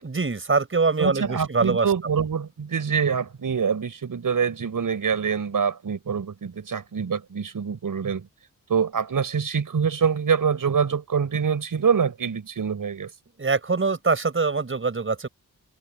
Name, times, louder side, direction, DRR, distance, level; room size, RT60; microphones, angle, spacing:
voice 1, 0.0-1.9 13.4-15.3, right 4 dB, 40° right, 5.7 m, -23 dB
voice 2, 1.0-8.3 8.7-13.1, right 6 dB, 70° right, 5.8 m, -25 dB
open air
wide cardioid pair, 125°, 33 cm